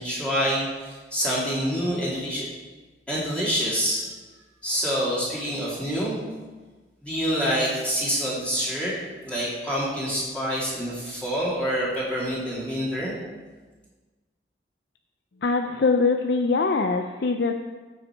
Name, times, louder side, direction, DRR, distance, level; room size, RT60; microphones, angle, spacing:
voice 1, 0.0-2.5 3.1-4.1 4.6-6.2 7.0-8.9 9.2-13.2, equal, 5° left, -8 dB, 2.5 m, -26 dB
voice 2, 15.4-17.5, left 4 dB, 65° left, 5 dB, 0.5 m, -22 dB
14.5 x 5.7 x 4.5 m, 1.3 s
head